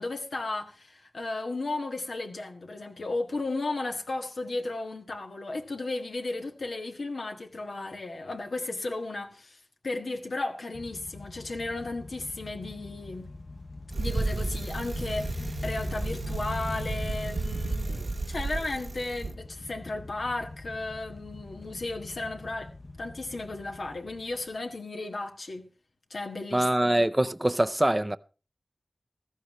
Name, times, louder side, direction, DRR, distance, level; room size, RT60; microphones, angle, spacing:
voice 1, 0.0-9.6 9.8-13.3 14.0-22.7 23.0-25.7 26.1-27.0, left 2 dB, 80° left, 1.6 m, -34 dB
sound 1, 10.7-24.6, left 2 dB, 40° left, 0.7 m, -42 dB
Bicycle, 13.9-19.3, right 3 dB, 75° right, 0.8 m, -33 dB
voice 2, 26.5-28.2, right 1 dB, 20° right, 0.5 m, -24 dB
15.0 x 14.0 x 3.1 m
wide cardioid pair, 55°, 0 cm